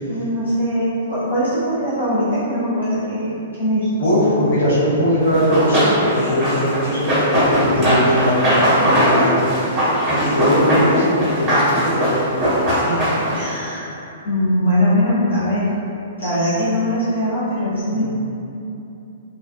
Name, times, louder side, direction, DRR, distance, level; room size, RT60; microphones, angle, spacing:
voice 1, 0.1-3.9 13.3-14.0 14.2-15.6 16.2-18.1, equal, 75° left, -14 dB, 1.1 m, -21 dB
voice 2, 4.0-9.7 10.1-12.3 12.9-13.0 17.9-18.1, equal, 50° left, -12 dB, 1.3 m, -20 dB
Run, 5.3-13.5, equal, 20° right, 1.2 m, -19 dB
3.0 x 2.2 x 2.5 m, 2.8 s
figure-of-eight pair, 110°, 0 cm